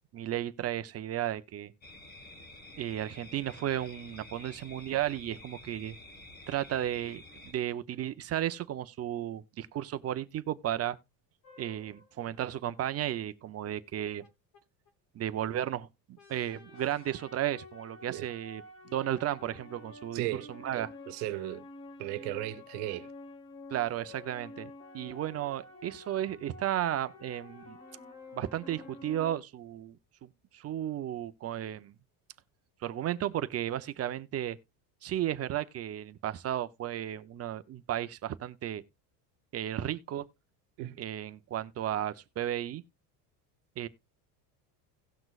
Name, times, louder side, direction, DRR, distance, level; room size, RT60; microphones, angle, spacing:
voice 1, 0.1-1.7 2.8-6.0 6.5-11.0 11.6-14.3 15.1-20.9 23.7-27.8 28.3-30.0 30.2-31.9 32.8-34.6 35.0-38.8 39.5-40.2 41.0-42.8 43.8-43.9, right 11 dB, 35° right, 0.7 m, -34 dB
sound 1, 1.8-7.5, left 1 dB, 20° left, 1.5 m, -50 dB
sound 2, 11.4-12.3 14.2-14.3 14.5-14.6 14.9-15.0 15.2-15.3 16.2-29.4, left 2 dB, 40° left, 1.4 m, -50 dB
voice 2, 20.1-20.5 20.7-21.7 22.0-23.1 40.8-41.0, right 16 dB, 80° right, 1.2 m, -36 dB
17.5 x 6.0 x 2.4 m
cardioid pair, 130°, 45 cm